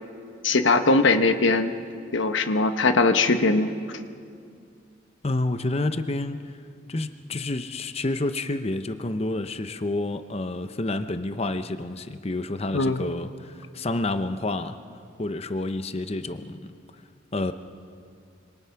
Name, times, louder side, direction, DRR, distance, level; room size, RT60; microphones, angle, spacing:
voice 1, 0.4-1.7 2.1-4.0 12.7-13.0, left 3 dB, 80° left, 8 dB, 1.1 m, -21 dB
voice 2, 5.2-6.5 6.9-14.8 15.2-16.7 17.3-17.5, left 2 dB, 30° left, 10 dB, 0.8 m, -29 dB
26.5 x 25.5 x 5.8 m, 2.3 s
head